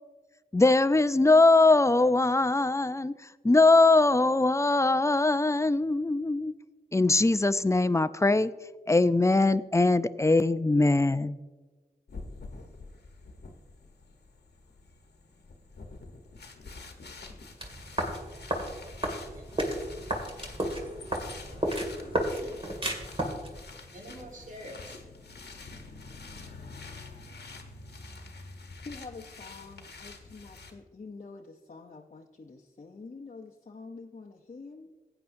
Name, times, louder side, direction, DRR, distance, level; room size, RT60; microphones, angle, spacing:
voice 1, 0.5-3.1 3.4-6.5 6.9-8.5 8.9-11.4, left 2 dB, 20° left, 0.4 m, -22 dB
sound 1, 12.1-30.7, left 3 dB, 85° left, 1.1 m, -47 dB
sound 2, 17.6-23.6, right 1 dB, 35° right, 2.2 m, -33 dB
voice 2, 21.9-22.6 23.9-24.9, equal, 50° right, 1.8 m, -47 dB
voice 3, 28.8-34.9, left 4 dB, 45° left, 0.7 m, -46 dB
15.5 x 8.9 x 2.7 m
cardioid pair, 45°, 17 cm